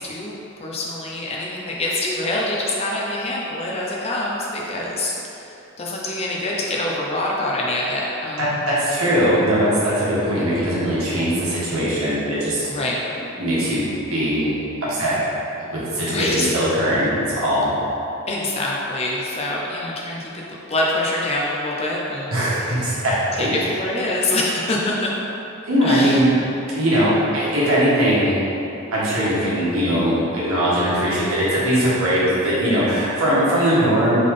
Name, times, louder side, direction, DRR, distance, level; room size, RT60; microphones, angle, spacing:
voice 1, 0.0-8.5 12.6-13.0 16.1-16.5 18.3-20.4 20.7-22.3 22.6-22.7 23.4-25.1 25.8-26.2, left 1 dB, 30° left, -3 dB, 0.5 m, -25 dB
voice 2, 8.4-12.7 13.4-14.5 14.9-15.1 15.6-17.7 22.3-23.5 25.6-26.3 26.7-28.4 28.9-34.2, equal, 80° right, -9 dB, 1.3 m, -20 dB
3.8 x 3.4 x 3.7 m, 2.9 s
head